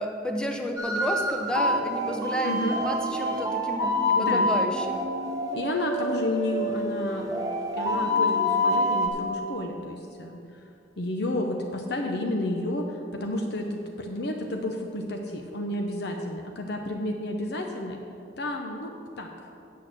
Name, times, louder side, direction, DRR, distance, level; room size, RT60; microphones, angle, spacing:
voice 1, 0.0-5.0, equal, 5° left, 3 dB, 0.8 m, -31 dB
sound 1, 0.8-9.1, left 1 dB, 20° right, 1.1 m, -27 dB
voice 2, 2.4-2.8 4.1-4.5 5.5-7.4 7.7-10.6 11.0-18.0 18.4-19.3, left 1 dB, 60° left, 3 dB, 0.7 m, -31 dB
8.4 x 6.4 x 7.5 m, 2.8 s
head